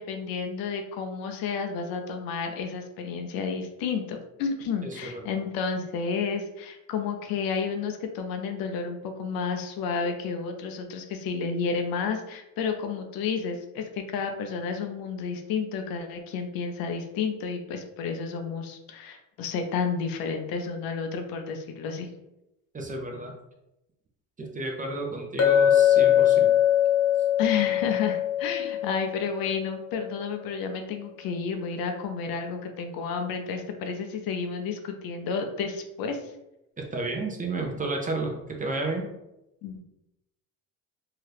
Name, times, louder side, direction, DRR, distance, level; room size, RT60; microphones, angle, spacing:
voice 1, 0.0-22.1 27.4-36.2 39.6-39.8, left 5 dB, 65° left, 5 dB, 0.6 m, -31 dB
voice 2, 4.8-5.4 22.7-23.3 24.4-26.6 36.9-39.1, right 2 dB, 20° right, 2 dB, 0.5 m, -32 dB
Chink clink, 25.4-29.6, left 10 dB, 45° left, 1.0 m, -22 dB
2.8 x 2.3 x 3.3 m, 0.91 s
supercardioid pair, 90°, 38 cm